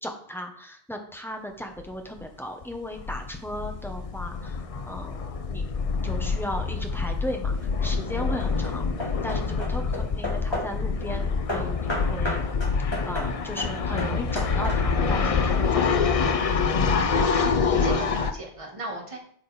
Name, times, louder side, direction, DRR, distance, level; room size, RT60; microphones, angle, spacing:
voice 1, 0.0-4.6 4.9-5.2 5.5-5.7 6.0-8.9 9.2-12.4 13.0-16.6, equal, ahead, 3 dB, 1.0 m, -36 dB
sound 1, 1.8-1.9 2.2-2.3 2.6-18.3, left 5 dB, 45° left, 0.5 m, -26 dB
Hammer / Wood, 7.3-7.8 8.4-10.8 11.5-15.1, left 1 dB, 25° left, 2.2 m, -34 dB
voice 2, 17.2-19.2, right 2 dB, 30° right, 1 dB, 1.6 m, -37 dB
9.1 x 5.3 x 4.2 m, 0.63 s
omnidirectional pair, 1.0 m